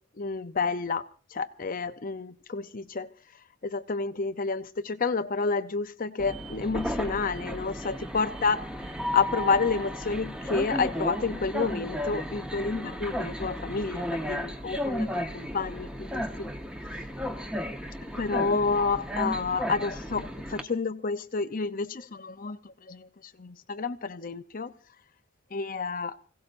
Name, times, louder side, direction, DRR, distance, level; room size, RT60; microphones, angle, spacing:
voice 1, 0.2-1.0 1.3-3.1 3.6-8.6 9.1-16.5 18.2-23.1 23.4-24.7 25.5-26.2, left 4 dB, 40° left, 0.6 m, -29 dB
Train, 6.2-20.6, equal, 5° right, 1.0 m, -34 dB
25.5 x 17.0 x 2.6 m
head